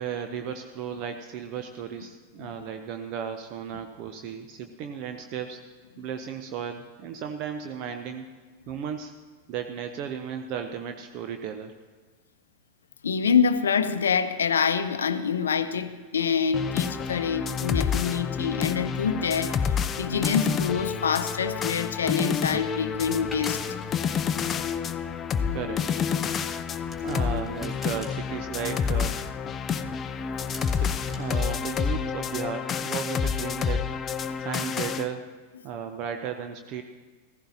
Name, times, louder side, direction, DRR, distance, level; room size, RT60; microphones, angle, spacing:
voice 1, 0.0-5.6 6.0-8.3 8.7-9.1 9.5-11.7 25.2-25.8 27.0-29.2 30.8-33.8 34.4-35.3 35.6-36.8, right 8 dB, 40° right, 7 dB, 0.6 m, -35 dB
voice 2, 13.0-23.6, left 6 dB, 70° left, 12 dB, 0.6 m, -26 dB
sound 1, 16.5-35.1, left 7 dB, 25° left, 0.5 m, -29 dB
sound 2, 19.7-31.7, left 2 dB, ahead, 1.8 m, -47 dB
15.5 x 15.0 x 2.8 m, 1.4 s
figure-of-eight pair, 90°, 0 cm